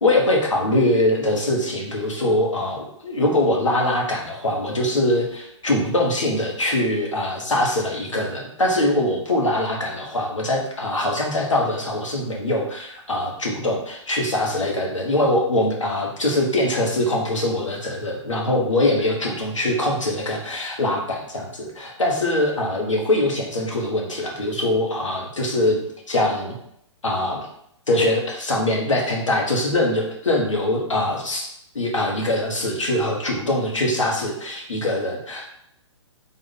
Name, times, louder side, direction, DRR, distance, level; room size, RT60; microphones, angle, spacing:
voice 1, 0.0-25.8 26.1-26.6 27.0-27.5 27.9-31.5 31.7-35.5, left 1 dB, 90° left, -1 dB, 1.1 m, -22 dB
3.7 x 2.5 x 3.9 m, 0.73 s
figure-of-eight pair, 125°, 16 cm